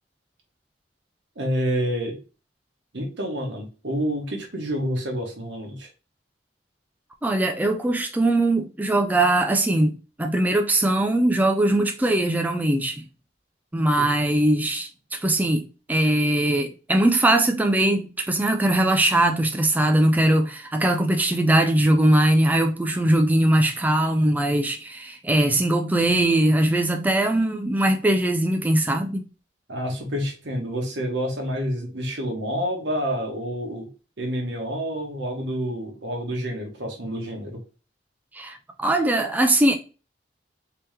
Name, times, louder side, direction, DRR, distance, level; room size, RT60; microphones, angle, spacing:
voice 1, 1.4-2.2 2.9-5.9 14.0-14.1 29.7-33.9 34.2-37.6, equal, 80° right, 1.2 m, -28 dB
voice 2, 7.2-13.1 13.7-29.2 38.3-39.7, right 1 dB, 10° right, 0.3 m, -21 dB
3.4 x 3.0 x 3.1 m
head